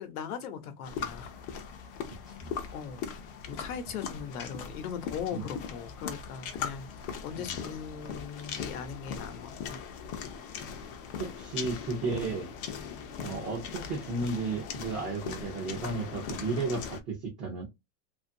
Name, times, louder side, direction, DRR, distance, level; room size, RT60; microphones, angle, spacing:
voice 1, 0.0-1.3 2.7-3.1 3.5-6.9 7.2-9.8, left 7 dB, 85° left, 0.9 m, -39 dB
sound 1, 0.8-17.0, left 7 dB, 40° left, 0.5 m, -40 dB
voice 2, 11.2-12.5 13.2-17.6, right 3 dB, 20° right, 0.4 m, -34 dB
2.6 x 2.5 x 2.5 m
supercardioid pair, 170°, 43 cm